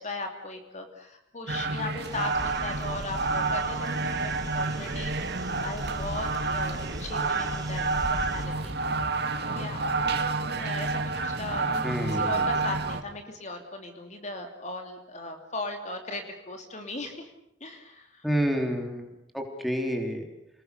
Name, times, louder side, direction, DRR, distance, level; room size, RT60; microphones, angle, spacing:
voice 1, 0.0-7.8 8.1-8.7 9.4-9.8 10.6-17.3 17.6-18.3, left 2 dB, 40° left, 4 dB, 2.8 m, -38 dB
sound 1, 1.5-13.0, right 3 dB, 60° right, 2.2 m, -29 dB
sound 2, 2.1-8.5, equal, 20° right, 5.8 m, -39 dB
voice 2, 11.8-12.5 18.2-19.0 19.3-20.3, equal, ahead, 2 dB, 3.6 m, -29 dB
29.5 x 20.5 x 6.7 m, 0.79 s
head